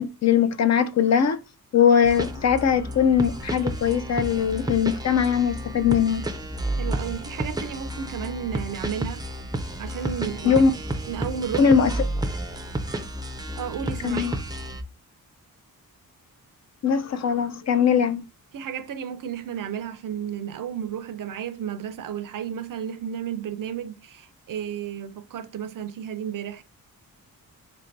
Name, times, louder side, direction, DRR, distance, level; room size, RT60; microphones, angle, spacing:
voice 1, 0.0-1.4 1.7-6.2 10.4-10.7 11.6-11.9 14.0-14.3 16.8-18.2, left 7 dB, 50° left, 0.5 m, -21 dB
sound 1, 2.0-14.8, right 1 dB, 10° right, 0.4 m, -31 dB
voice 2, 6.8-9.2 9.8-10.6 11.1-11.7 13.6-14.3 18.5-26.6, right 8 dB, 65° right, 0.5 m, -33 dB
3.4 x 2.6 x 4.5 m
wide cardioid pair, 140°, 36 cm